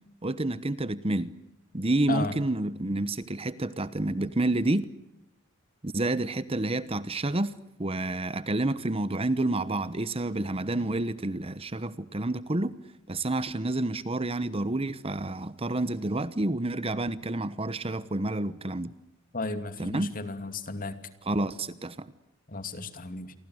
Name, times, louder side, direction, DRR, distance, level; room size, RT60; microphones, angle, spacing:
voice 1, 0.2-1.3 1.7-4.8 5.8-12.7 13.1-18.9 19.8-20.1 21.2-22.1, right 2 dB, 25° right, 1.0 m, -29 dB
voice 2, 19.3-21.0 22.5-23.3, left 2 dB, 40° left, 2.6 m, -34 dB
29.5 x 24.0 x 7.9 m
head